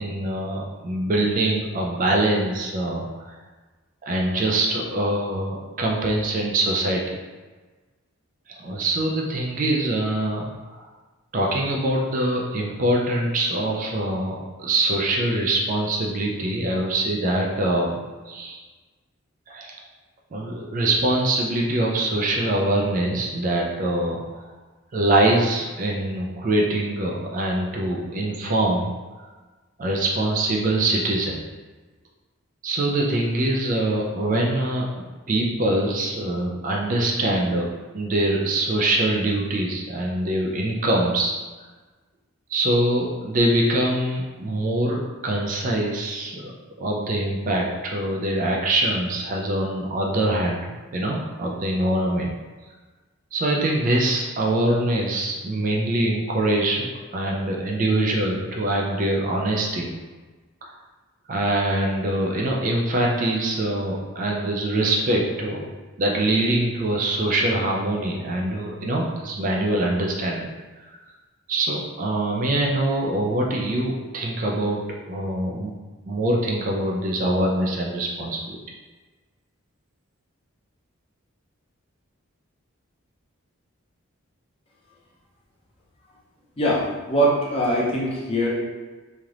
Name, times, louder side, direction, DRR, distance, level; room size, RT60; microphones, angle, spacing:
voice 1, 0.0-3.3 4.0-7.2 8.5-10.9 11.3-18.0 18.3-18.6 19.5-19.8 20.3-24.4 24.9-28.9 29.8-31.4 32.6-37.7 37.9-41.4 42.5-46.5 46.8-52.3 53.3-59.9 60.6-60.7 61.3-65.7 66.0-70.5 71.5-75.7 76.1-78.6, right 1 dB, 35° right, -1 dB, 0.3 m, -24 dB
voice 2, 86.6-88.6, right 1 dB, 25° left, -5 dB, 0.6 m, -22 dB
3.2 x 2.8 x 2.4 m, 1.3 s
head